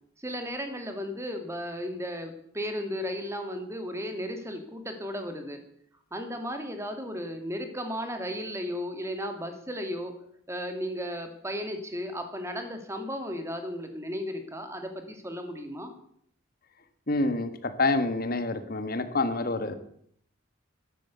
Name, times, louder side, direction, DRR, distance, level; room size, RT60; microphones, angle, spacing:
voice 1, 0.2-5.6 6.1-10.1 10.5-15.9 19.6-19.8, equal, 15° right, 6 dB, 2.3 m, -35 dB
voice 2, 17.1-19.7, left 2 dB, 45° left, 10 dB, 1.4 m, -27 dB
12.0 x 11.5 x 8.2 m, 0.66 s
head